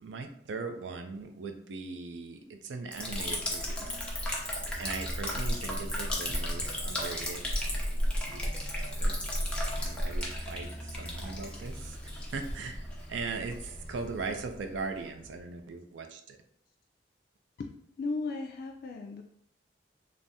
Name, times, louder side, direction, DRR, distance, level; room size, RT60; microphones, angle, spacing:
voice 1, 0.0-3.9 4.8-9.2 9.8-12.8 13.1-16.4, right 4 dB, 85° right, 6 dB, 0.4 m, -40 dB
Liquid, 2.9-15.4, equal, 5° left, 0.6 m, -34 dB
voice 2, 17.6-19.2, left 3 dB, 55° left, 2 dB, 0.3 m, -36 dB
3.4 x 2.0 x 2.6 m, 0.69 s
head